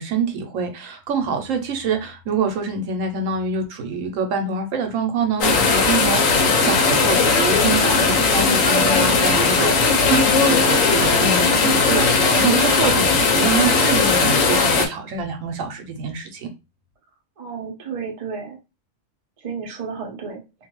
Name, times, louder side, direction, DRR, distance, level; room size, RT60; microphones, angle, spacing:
voice 1, 0.0-16.5, right 5 dB, 85° right, 1.0 m, -26 dB
sound 1, 5.4-14.9, left 4 dB, 85° left, 1.0 m, -17 dB
voice 2, 17.4-18.6 19.4-20.4, right 5 dB, 40° right, 0.5 m, -32 dB
2.5 x 2.3 x 3.0 m
omnidirectional pair, 1.3 m